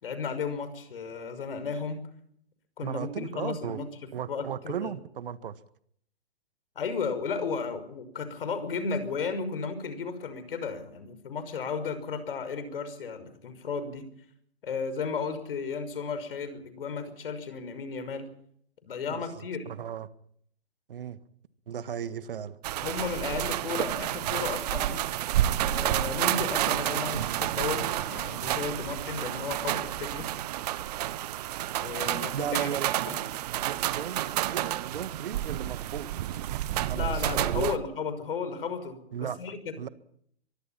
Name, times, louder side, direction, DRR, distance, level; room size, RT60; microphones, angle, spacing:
voice 1, 0.0-2.0 2.8-5.0 6.8-14.1 14.6-18.3 18.8-19.7 22.8-25.0 25.6-30.3 30.5-30.6 31.8-32.7 33.1-33.2 36.9-39.8, left 5 dB, 60° left, 5.9 m, -34 dB
voice 2, 2.8-3.8 4.1-5.6 19.1-19.2 19.7-20.1 20.9-21.2 21.7-22.6 32.3-32.9 33.5-36.1 36.9-37.7 39.1-39.4 39.8-39.9, right 8 dB, 60° right, 1.8 m, -35 dB
sound 1, 22.6-37.8, right 13 dB, 40° right, 1.4 m, -30 dB
24.0 x 23.0 x 5.8 m
figure-of-eight pair, 130°, 32 cm